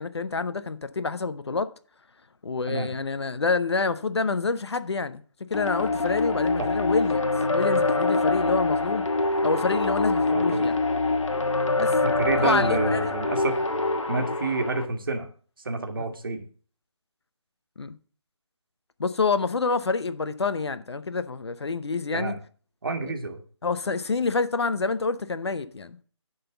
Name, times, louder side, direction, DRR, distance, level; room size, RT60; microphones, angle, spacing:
voice 1, 0.0-1.7 2.4-5.2 5.5-9.0 9.4-10.8 11.8-11.9 12.4-13.1 16.0-16.1 17.8-18.0 19.0-22.4 23.0-23.1 23.6-26.0, left 4 dB, 60° left, 0.8 m, -27 dB
sound 1, 5.5-14.9, left 3 dB, 90° left, 1.3 m, -25 dB
voice 2, 10.3-10.7 12.0-13.6 14.1-15.3 15.6-16.4 22.1-22.4 22.8-23.4, right 3 dB, 45° right, 1.5 m, -28 dB
11.0 x 4.0 x 6.9 m
figure-of-eight pair, 170°, 16 cm